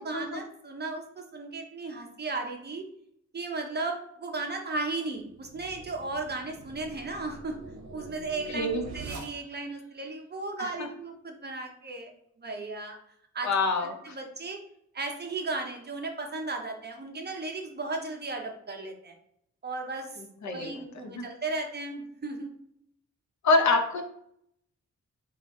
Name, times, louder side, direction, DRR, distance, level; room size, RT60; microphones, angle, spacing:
voice 1, 0.0-2.9 3.3-7.6 7.9-13.0 13.3-13.5 13.8-14.6 14.9-19.2 19.6-20.2 20.5-22.5, right 3 dB, 35° right, 3 dB, 0.7 m, -35 dB
sound 1, 5.2-9.8, right 3 dB, 65° right, 0.8 m, -45 dB
voice 2, 8.5-8.8 10.6-10.7 13.4-14.2 20.4-20.7 21.1-21.2 23.4-24.0, left 3 dB, 70° left, 4 dB, 0.7 m, -25 dB
4.5 x 2.4 x 4.2 m, 0.72 s
wide cardioid pair, 175°, 29 cm